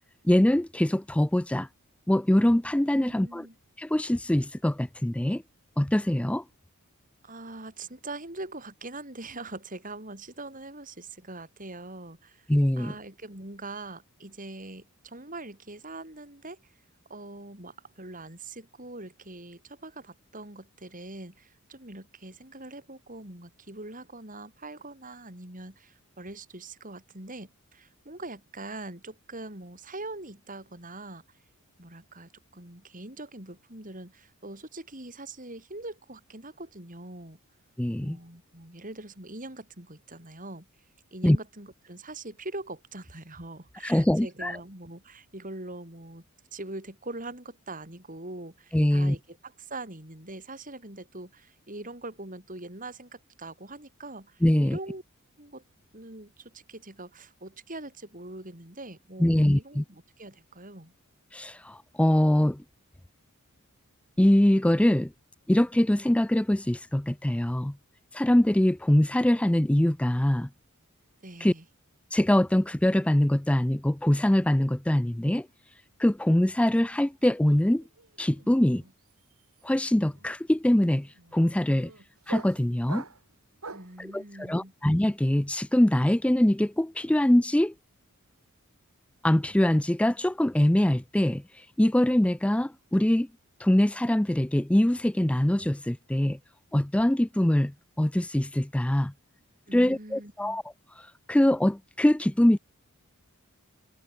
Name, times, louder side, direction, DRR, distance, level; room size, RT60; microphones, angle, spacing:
voice 1, 0.2-1.7 2.1-3.5 3.8-5.4 5.8-6.4 12.5-12.9 37.8-38.2 41.2-41.4 43.8-44.6 48.7-49.2 54.4-54.8 59.2-59.8 61.3-62.6 64.2-65.1 65.5-67.8 68.1-70.5 71.4-71.5 72.1-75.5 76.0-77.8 78.2-78.8 79.6-81.9 82.3-83.0 84.0-87.7 89.2-91.4 91.8-93.3 93.6-96.4 96.7-99.1 99.7-100.6 101.3-102.6, left 1 dB, 5° left, 0.4 m, -23 dB
voice 2, 2.9-3.6 7.2-12.5 12.8-16.7 17.1-31.2 31.8-37.4 38.0-40.7 41.1-46.2 46.5-55.0 55.4-55.6 55.9-60.9 71.2-71.6 83.7-84.7 99.7-100.6, right 2 dB, 35° right, 6.1 m, -42 dB
sound 1, 77.2-77.5 77.8-84.0, right 3 dB, 70° right, 3.2 m, -46 dB
head